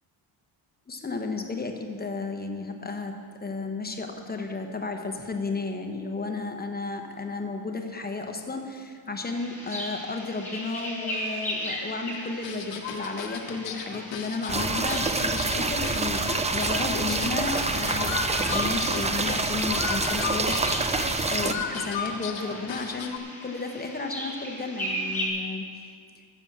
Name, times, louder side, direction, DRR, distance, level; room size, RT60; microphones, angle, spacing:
voice 1, 0.9-3.1 3.4-16.2 16.5-25.7, left 3 dB, 20° left, 4 dB, 1.0 m, -33 dB
sound 1, 9.3-25.3, equal, 5° left, 2.7 m, -38 dB
sound 2, 12.4-23.2, left 6 dB, 65° left, 1.2 m, -35 dB
sound 3, 14.5-21.5, right 3 dB, 15° right, 0.4 m, -27 dB
12.5 x 7.2 x 7.4 m, 2.1 s
wide cardioid pair, 165°, 47 cm